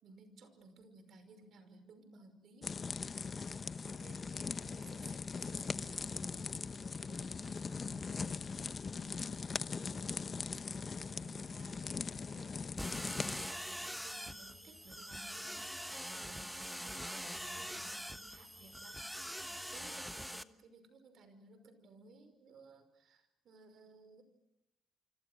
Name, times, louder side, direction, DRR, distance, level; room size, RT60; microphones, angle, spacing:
voice 1, 0.0-2.7 3.0-3.3 3.8-8.7 9.0-9.3 9.8-15.8 16.1-19.0 19.3-24.2, right 3 dB, 65° right, 10 dB, 5.5 m, -59 dB
sound 1, 2.6-13.5, left 5 dB, 40° left, 0.8 m, -40 dB
sound 2, 12.8-20.4, equal, ahead, 1.2 m, -43 dB
28.0 x 25.5 x 6.4 m, 0.91 s
cardioid pair, 90°, 0 cm